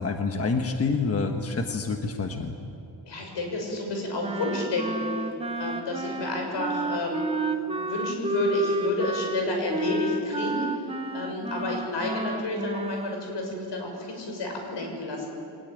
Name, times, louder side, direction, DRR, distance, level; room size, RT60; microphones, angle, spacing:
voice 1, 0.0-2.5, left 4 dB, 35° left, 4 dB, 1.3 m, -27 dB
voice 2, 3.1-5.1 5.6-7.3 7.8-10.7 11.1-15.2, left 2 dB, 80° left, 2 dB, 6.4 m, -30 dB
Wind instrument woodwind instrument, 4.2-13.2, right 2 dB, 15° right, 1.0 m, -31 dB
22.5 x 20.0 x 9.2 m, 2.9 s
wide cardioid pair, 160°, 42 cm